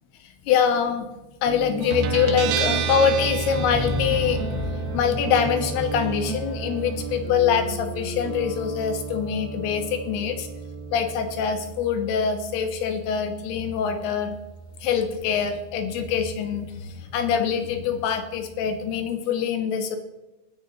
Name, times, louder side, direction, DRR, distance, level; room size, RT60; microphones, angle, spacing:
voice 1, 0.5-1.1 1.4-10.5 10.9-14.4 14.8-20.0, left 7 dB, 80° left, 6 dB, 3.2 m, -24 dB
sound 1, 1.5-12.0, right 3 dB, 50° right, 2.2 m, -36 dB
Guitar, 1.9-19.1, right 6 dB, 75° right, 2.5 m, -33 dB
21.5 x 9.7 x 2.9 m, 1.1 s
omnidirectional pair, 4.7 m